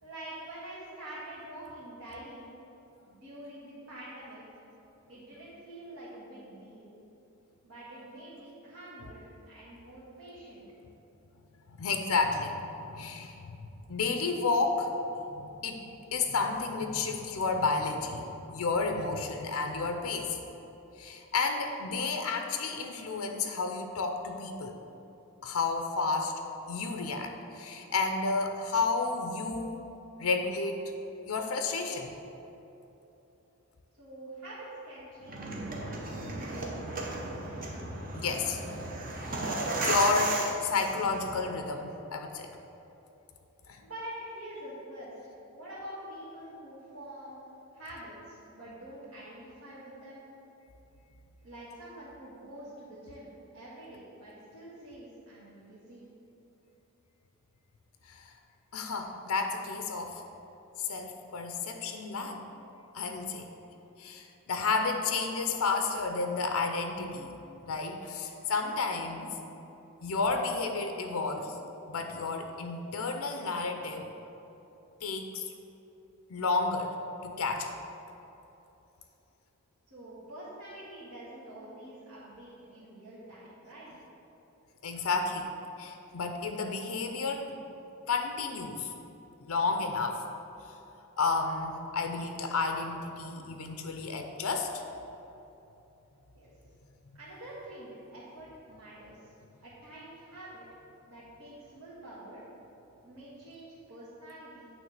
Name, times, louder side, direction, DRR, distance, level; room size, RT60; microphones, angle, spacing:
voice 1, 0.0-2.5 3.0-4.6 5.1-6.9 7.6-10.6 34.0-37.2 43.8-47.4 47.7-50.2 51.4-56.1 79.9-83.9 96.3-96.5 97.1-99.4 99.6-100.7 101.1-102.4 103.0-104.7, right 1 dB, 65° right, -10 dB, 1.7 m, -46 dB
voice 2, 11.7-12.6 12.9-14.9 15.3-20.4 21.0-24.8 25.4-26.3 26.7-29.9 30.2-30.9 31.3-32.2 38.1-38.6 39.1-39.4 39.8-42.5 43.7-43.8 58.1-58.3 58.7-60.2 60.8-62.4 62.9-63.5 64.0-67.4 67.6-69.4 70.0-71.6 71.9-74.1 75.0-75.5 76.3-76.9 77.2-77.8 84.8-87.6 88.1-88.9 89.4-90.2 91.2-94.8, left 4 dB, 70° left, 4 dB, 0.5 m, -31 dB
sound 1, 35.2-41.4, right 2 dB, 40° right, 0.9 m, -34 dB
9.2 x 3.2 x 6.5 m, 3.0 s
head